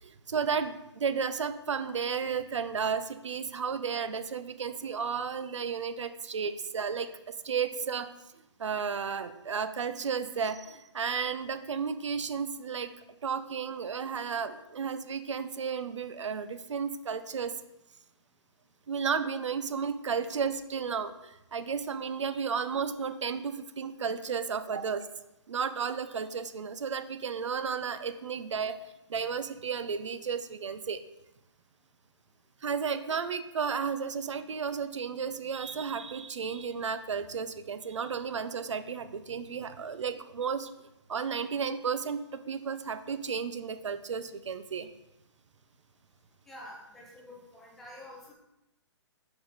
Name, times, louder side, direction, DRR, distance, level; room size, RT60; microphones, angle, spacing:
voice 1, 0.0-8.1 8.6-12.9 13.2-17.5 18.9-25.0 25.5-28.7 29.1-31.0 32.6-40.7 41.1-44.9, right 6 dB, 90° right, 10 dB, 0.7 m, -33 dB
voice 2, 46.5-48.3, left 1 dB, ahead, -2 dB, 0.4 m, -47 dB
6.2 x 4.9 x 4.0 m, 0.90 s
hypercardioid pair, 175°, 15 cm